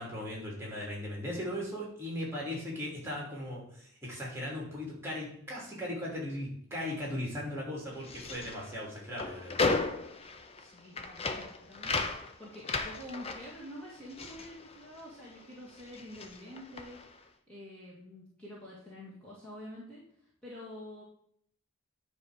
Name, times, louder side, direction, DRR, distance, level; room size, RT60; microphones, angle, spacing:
voice 1, 0.0-9.6, left 1 dB, 10° right, -3 dB, 2.7 m, -38 dB
sound 1, 7.9-15.4 15.7-17.2, left 3 dB, 30° left, 0.6 m, -36 dB
voice 2, 10.6-20.0 20.4-21.0, left 1 dB, 5° left, -8 dB, 2.0 m, -47 dB
10.0 x 3.4 x 6.4 m, 0.66 s
head